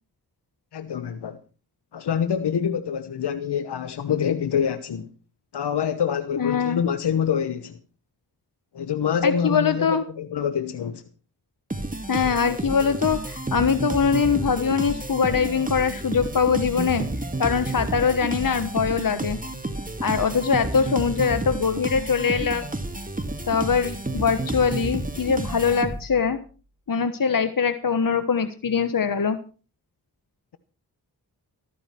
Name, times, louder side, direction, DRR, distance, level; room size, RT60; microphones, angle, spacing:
voice 1, 0.7-1.4 1.9-5.1 5.5-7.8 8.7-11.0, left 8 dB, 85° left, 1.0 m, -26 dB
voice 2, 6.4-6.8 9.2-10.0 12.1-17.0 17.4-19.4 20.0-22.6 23.5-26.4 26.9-29.4, left 6 dB, 55° left, 1.3 m, -22 dB
sound 1, 11.7-26.3, right 2 dB, 20° right, 2.2 m, -31 dB
14.0 x 14.0 x 4.5 m
cardioid pair, 50°, 39 cm